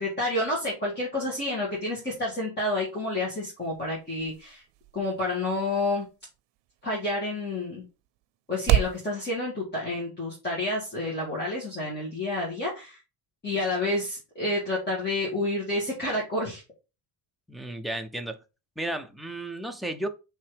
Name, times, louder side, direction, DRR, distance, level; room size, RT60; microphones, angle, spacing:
voice 1, 0.0-4.6 4.9-6.0 6.8-7.8 8.5-13.0 13.4-16.6, left 2 dB, 25° left, 2.1 m, -29 dB
sound 1, 2.8-9.0, right 12 dB, 85° right, 0.6 m, -33 dB
voice 2, 17.5-18.4 18.8-20.1, right 1 dB, ahead, 0.4 m, -33 dB
5.7 x 3.5 x 5.0 m
cardioid pair, 170°, 42 cm